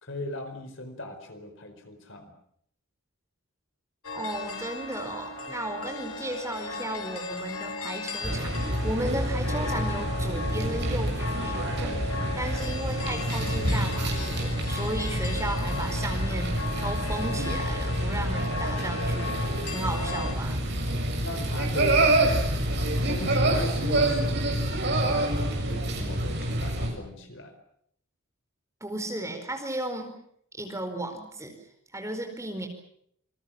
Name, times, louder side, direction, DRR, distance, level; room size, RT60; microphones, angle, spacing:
voice 1, 0.0-2.3 21.2-22.1 23.0-27.5, left 2 dB, 55° left, 7 dB, 4.7 m, -38 dB
sound 1, 4.0-20.3, left 3 dB, 80° left, 4.6 m, -36 dB
voice 2, 4.1-8.6 8.8-16.5 16.8-19.3 19.7-20.6 28.8-30.1 30.6-31.6 31.9-32.7, right 1 dB, 15° right, 4 dB, 4.7 m, -35 dB
sound 2, 8.2-26.9, right 1 dB, 50° right, 7.0 m, -27 dB
27.5 x 22.0 x 7.5 m, 0.68 s
head